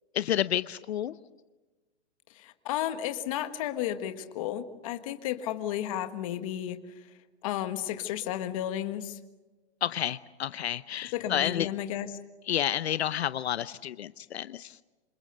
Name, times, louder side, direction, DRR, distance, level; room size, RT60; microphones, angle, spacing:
voice 1, 0.1-1.1 9.8-11.7 12.5-14.8, left 11 dB, 75° left, 14 dB, 0.9 m, -30 dB
voice 2, 2.3-6.8 7.4-9.2 11.1-12.1, left 11 dB, 30° left, 9 dB, 1.5 m, -33 dB
27.5 x 27.0 x 6.7 m, 1.2 s
hypercardioid pair, 170°, 33 cm